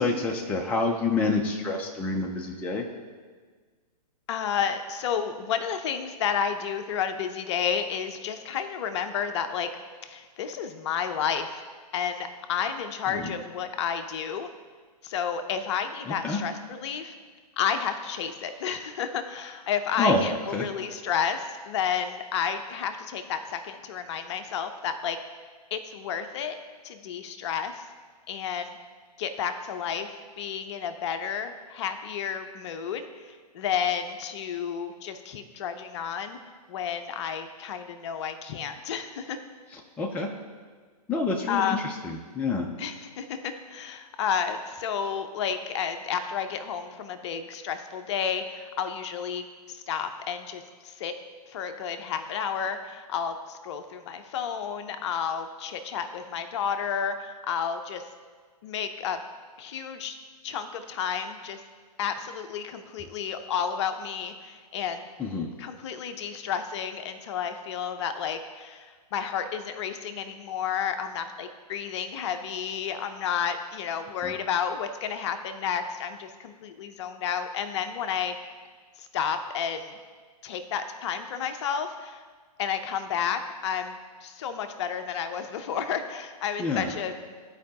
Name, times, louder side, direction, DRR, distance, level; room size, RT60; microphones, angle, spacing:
voice 1, 0.0-2.9 13.1-13.3 16.1-16.4 20.0-20.2 20.5-20.6 40.0-40.3 41.1-42.7 65.2-65.5 74.2-74.3 86.6-86.9, left 3 dB, 5° left, 1 dB, 0.4 m, -27 dB
voice 2, 4.3-9.7 10.0-11.6 11.9-14.5 15.0-17.1 17.6-25.2 25.7-26.6 26.8-27.8 28.3-28.8 29.2-30.1 30.4-36.4 36.7-39.4 41.5-41.9 42.8-51.1 51.5-58.0 58.6-59.2 59.6-60.2 60.4-61.6 62.0-65.0 65.6-78.4 79.0-79.9 80.4-82.2 82.6-87.3, left 7 dB, 45° left, 8 dB, 0.6 m, -31 dB
13.5 x 4.7 x 2.9 m, 1.5 s
hypercardioid pair, 125°, 21 cm